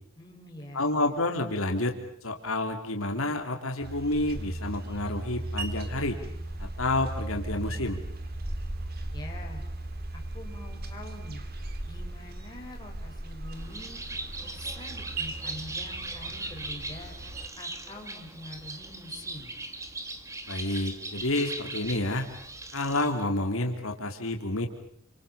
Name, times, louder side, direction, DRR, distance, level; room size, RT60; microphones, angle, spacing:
voice 1, 0.2-1.2 9.1-9.6 10.1-11.4 11.9-14.0 14.4-17.1 17.6-19.5, left 1 dB, 20° left, 0 dB, 6.2 m, -45 dB
voice 2, 0.7-2.0 2.2-6.2 6.6-8.0 20.5-22.3 22.7-24.7, left 2 dB, 75° left, 4 dB, 3.3 m, -29 dB
sound 1, 3.8-17.5, right 2 dB, 45° right, 3.1 m, -37 dB
Bird, 13.5-23.2, right 2 dB, 15° right, 2.3 m, -39 dB
29.5 x 26.5 x 7.1 m, 0.65 s
head